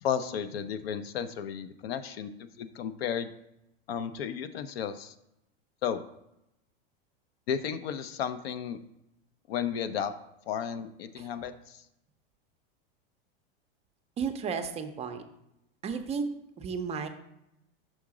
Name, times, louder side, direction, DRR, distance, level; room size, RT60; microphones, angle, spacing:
voice 1, 0.0-3.3 3.9-5.1 5.8-6.0 7.5-8.8 9.5-10.1 10.5-11.8, left 8 dB, 85° left, 10 dB, 0.6 m, -33 dB
voice 2, 14.2-15.2 15.8-16.3 16.6-17.1, right 6 dB, 20° right, 7 dB, 0.4 m, -33 dB
6.3 x 3.7 x 4.8 m, 0.85 s
supercardioid pair, 125°, 29 cm